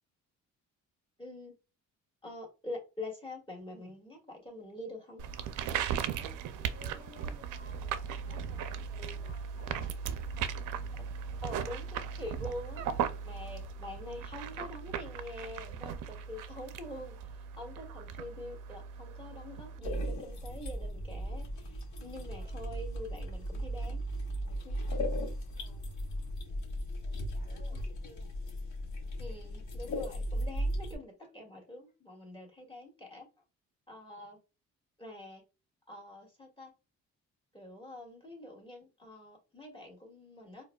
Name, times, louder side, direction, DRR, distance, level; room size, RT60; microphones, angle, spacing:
voice 1, 1.2-1.5 2.2-5.2 10.9-11.0 11.4-24.0 24.6-24.8 27.7-27.9 29.2-33.3 33.9-34.4 35.0-35.4 35.9-36.7 37.5-40.6, left 1 dB, 15° left, 1.6 m, -45 dB
sound 1, 5.2-19.8, right 8 dB, 85° right, 0.5 m, -38 dB
voice 2, 5.5-10.5 22.3-22.7 25.4-25.9 27.0-28.3, left 1 dB, 35° left, 1.3 m, -57 dB
sound 2, 19.8-31.0, equal, 70° left, 1.1 m, -36 dB
4.5 x 2.2 x 2.2 m
cardioid pair, 90°, 30 cm